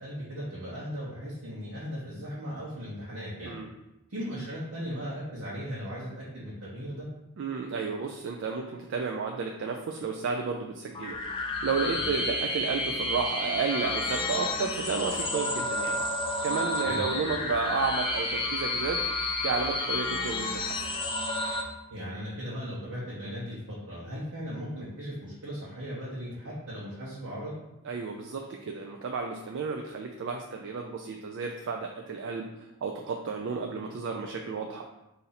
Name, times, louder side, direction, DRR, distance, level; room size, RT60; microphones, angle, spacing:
voice 1, 0.0-3.6 4.1-7.1 11.9-12.0 16.8-17.0 21.9-27.5, equal, 75° right, -8 dB, 1.0 m, -37 dB
voice 2, 7.4-16.0 16.4-19.0 19.4-20.9 27.9-34.8, right 5 dB, 55° right, 2 dB, 0.3 m, -32 dB
sound 1, 10.9-21.6, left 2 dB, 25° left, 0.5 m, -31 dB
4.1 x 2.7 x 4.0 m, 0.93 s
head